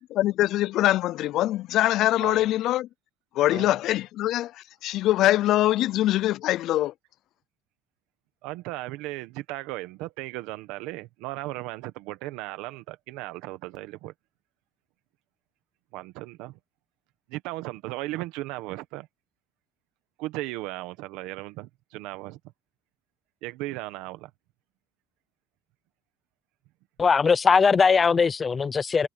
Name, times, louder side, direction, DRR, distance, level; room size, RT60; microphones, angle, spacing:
voice 1, 0.0-2.9 3.4-4.5 4.8-6.9, left 14 dB, 60° left, 0.4 m, -23 dB
voice 2, 2.2-2.5 3.5-3.7 8.4-14.1 15.9-16.6 17.3-19.1 20.2-22.4 23.4-24.3, right 18 dB, 90° right, 1.4 m, -36 dB
voice 3, 27.0-29.1, left 5 dB, 25° left, 0.6 m, -20 dB
cardioid pair, 140°, 0 cm